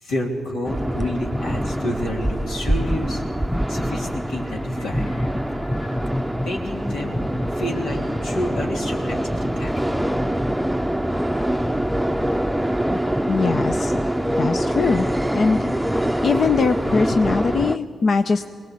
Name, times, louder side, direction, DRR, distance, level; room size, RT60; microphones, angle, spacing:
voice 1, 0.0-3.2 3.7-6.1 6.4-10.1, left 1 dB, 90° left, -1 dB, 3.5 m, -30 dB
sound 1, 0.6-17.8, equal, ahead, 0.7 m, -24 dB
voice 2, 13.3-13.9 14.4-15.1 15.3-15.7 16.2-18.5, left 4 dB, 55° left, 8 dB, 0.7 m, -21 dB
23.5 x 19.0 x 8.5 m, 2.1 s
cardioid pair, 65°, 0 cm